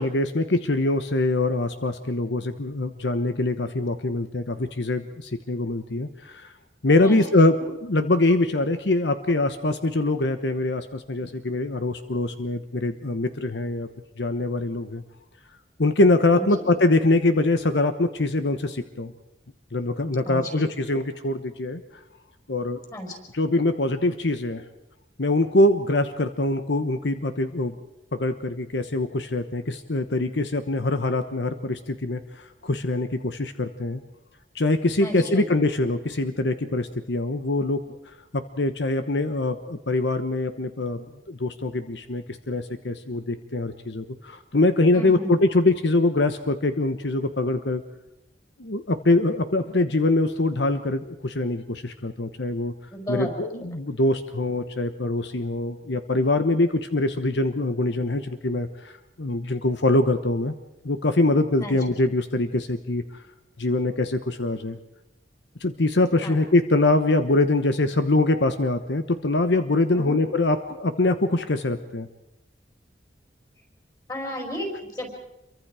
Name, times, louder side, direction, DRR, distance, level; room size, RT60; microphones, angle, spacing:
voice 1, 0.0-6.5 6.8-13.9 14.2-15.0 15.8-19.1 19.7-21.8 22.5-22.8 23.3-24.6 25.2-27.7 28.1-34.0 34.5-37.8 38.3-47.8 48.6-52.7 53.1-58.9 59.2-60.5 60.8-63.0 63.6-64.8 65.6-72.1, left 2 dB, 75° left, 9 dB, 1.1 m, -23 dB
voice 2, 7.0-7.4 16.3-16.8 20.2-20.7 22.9-23.2 35.0-35.5 44.9-45.4 52.9-53.7 61.6-62.0 66.2-66.4 69.9-70.2 74.1-75.1, equal, 20° left, 1 dB, 5.3 m, -33 dB
27.5 x 24.0 x 4.9 m, 0.90 s
head